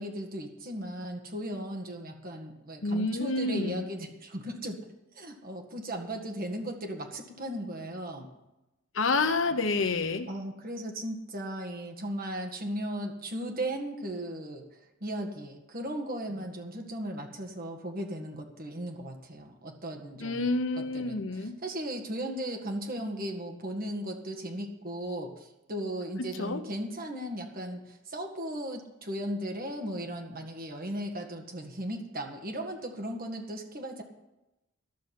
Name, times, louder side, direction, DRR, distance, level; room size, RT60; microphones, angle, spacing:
voice 1, 0.0-4.8 5.1-8.3 10.3-14.7 15.0-34.0, right 1 dB, 50° right, 3 dB, 1.8 m, -37 dB
voice 2, 2.8-3.8 8.9-10.3 20.2-21.6 26.2-26.6, left 3 dB, 75° left, 9 dB, 1.0 m, -28 dB
12.5 x 6.6 x 9.4 m, 0.97 s
head